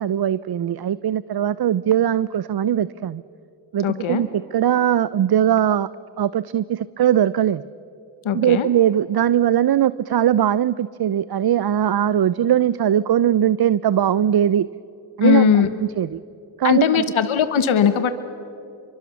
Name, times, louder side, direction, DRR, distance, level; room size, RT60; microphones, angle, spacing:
voice 1, 0.0-3.2 3.7-5.9 6.2-7.6 8.3-14.7 15.2-16.2 16.6-17.0, right 10 dB, 50° right, 18 dB, 0.6 m, -20 dB
voice 2, 3.8-4.2 8.2-8.7 15.2-15.7 16.6-18.1, left 8 dB, 80° left, 11 dB, 1.2 m, -19 dB
28.5 x 24.0 x 7.1 m, 2.7 s
cardioid pair, 45°, 47 cm